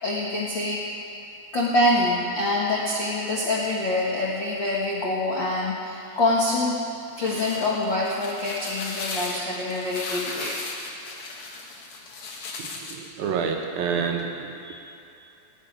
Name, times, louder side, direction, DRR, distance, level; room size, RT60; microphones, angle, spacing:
voice 1, 0.0-0.8 1.5-6.8 7.2-10.6 14.6-14.8, left 1 dB, 80° left, -5 dB, 1.0 m, -25 dB
sound 1, 6.9-13.1, left 3 dB, 55° left, 2.2 m, -36 dB
voice 2, 12.6-14.5, right 6 dB, 70° right, 2 dB, 2.6 m, -28 dB
18.0 x 7.2 x 9.3 m, 2.9 s
omnidirectional pair, 4.7 m